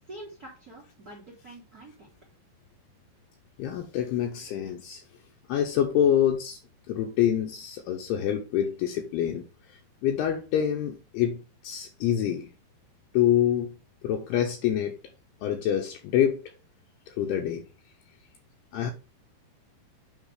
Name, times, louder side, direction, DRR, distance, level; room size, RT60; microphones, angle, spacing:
voice 1, 0.1-2.2, right 1 dB, 70° right, 0.8 m, -46 dB
voice 2, 3.6-5.0 5.5-6.6 6.9-12.5 13.1-13.7 14.0-15.0 15.4-16.4 17.1-17.6 18.7-18.9, left 10 dB, 80° left, 2.5 m, -26 dB
9.1 x 3.4 x 4.9 m
omnidirectional pair, 5.2 m